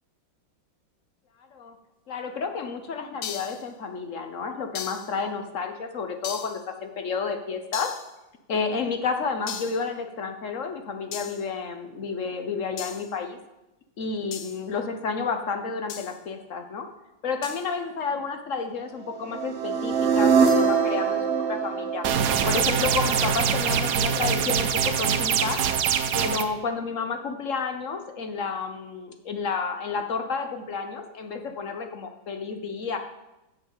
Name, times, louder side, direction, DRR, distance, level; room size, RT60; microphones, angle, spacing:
voice 1, 2.1-7.9 8.5-13.4 14.0-16.9 17.2-22.0 22.4-25.6 26.1-33.0, left 5 dB, 55° left, 6 dB, 1.0 m, -31 dB
sound 1, 3.2-3.7 4.7-5.2 6.2-6.6 7.7-8.1 9.5-9.9 11.1-11.5 12.8-13.1 14.3-14.6 15.9-16.2 17.4-17.7, left 8 dB, 80° left, 0.6 m, -37 dB
sound 2, 19.3-23.3, right 6 dB, 45° right, 1.1 m, -23 dB
sound 3, 22.0-26.4, right 7 dB, 65° right, 1.1 m, -24 dB
7.9 x 6.9 x 7.4 m, 0.96 s
omnidirectional pair, 2.1 m